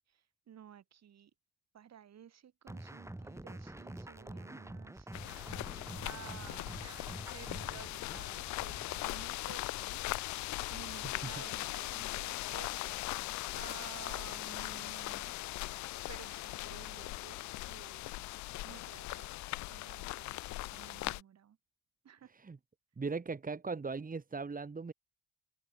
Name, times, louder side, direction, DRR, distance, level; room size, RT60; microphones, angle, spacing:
voice 1, 0.1-1.3 1.7-5.1 6.0-15.3 16.1-18.3 18.6-19.3 19.7-21.6 22.0-22.3, right 9 dB, 55° right, 7.5 m, -54 dB
sound 1, 2.7-9.1, right 1 dB, 10° right, 2.5 m, -47 dB
sound 2, 5.1-21.2, left 19 dB, 65° left, 0.6 m, -40 dB
voice 2, 23.0-24.9, right 4 dB, 25° right, 2.4 m, -39 dB
open air
hypercardioid pair, 55°, 31 cm